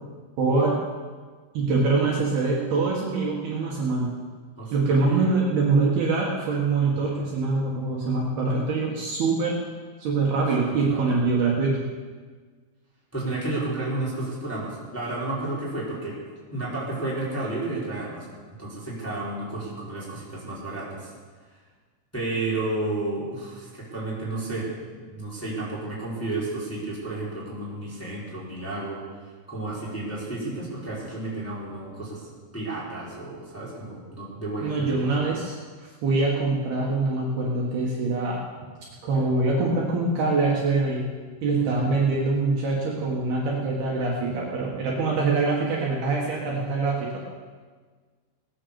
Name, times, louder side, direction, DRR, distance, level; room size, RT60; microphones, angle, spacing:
voice 1, 0.4-0.8 1.5-4.1 4.7-9.6 10.0-11.9 34.6-35.6 36.0-38.4 39.0-41.1 41.4-47.2, right 3 dB, 60° right, -3 dB, 3.2 m, -24 dB
voice 2, 4.6-5.3 10.7-11.0 13.1-16.2 16.5-21.1 22.1-29.0 29.5-32.2 32.5-35.1, right 2 dB, 5° left, -7 dB, 3.8 m, -32 dB
18.0 x 10.0 x 7.0 m, 1.5 s
omnidirectional pair, 5.6 m